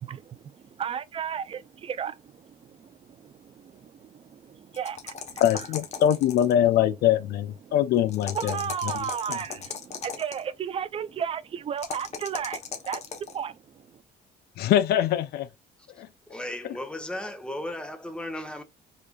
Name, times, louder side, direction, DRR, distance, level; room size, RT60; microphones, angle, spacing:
voice 1, 0.0-5.7 7.6-7.8 8.3-14.0, right 8 dB, 35° right, 0.4 m, -34 dB
sound 1, 4.7-6.6 8.1-10.4 11.8-13.4, left 6 dB, 40° left, 0.9 m, -37 dB
voice 2, 5.4-8.5 14.6-15.5 16.0-16.1, left 11 dB, 70° left, 0.5 m, -23 dB
voice 3, 16.3-18.6, left 1 dB, 5° left, 0.8 m, -35 dB
4.9 x 2.5 x 2.3 m
cardioid pair, 110°, 17 cm